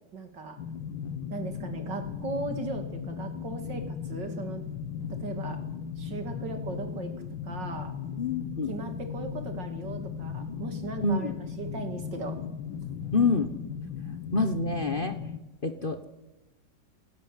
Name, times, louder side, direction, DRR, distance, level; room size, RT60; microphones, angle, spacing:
voice 1, 0.1-0.6 1.3-4.6 5.1-5.6 6.0-7.1 7.4-7.9 8.7-12.3, right 3 dB, 70° right, 6 dB, 3.2 m, -37 dB
sound 1, 0.6-15.4, left 7 dB, 85° left, 1.8 m, -37 dB
voice 2, 8.2-8.7 11.0-11.4 13.1-13.5 14.3-15.2 15.6-16.0, left 3 dB, 35° left, 9 dB, 1.1 m, -27 dB
18.5 x 17.0 x 9.2 m, 1.1 s
omnidirectional pair, 2.0 m